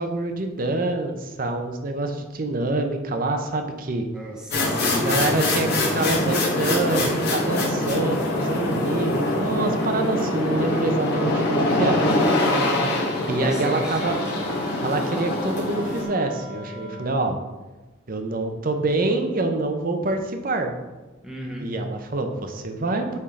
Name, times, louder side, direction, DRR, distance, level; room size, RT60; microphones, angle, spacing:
voice 1, 0.0-4.1 5.0-12.1 13.3-14.1 14.8-17.4 18.1-20.7 21.6-23.2, right 2 dB, 45° right, 5 dB, 0.7 m, -26 dB
voice 2, 4.1-5.3 6.0-6.4 12.3-13.0 13.4-14.2 21.2-21.7, equal, 5° right, -1 dB, 0.9 m, -33 dB
sound 1, 4.5-16.0, left 1 dB, 55° left, 1.6 m, -24 dB
Wind instrument woodwind instrument, 12.3-17.2, equal, 80° left, 1.5 m, -39 dB
8.6 x 3.7 x 3.7 m, 1.2 s
head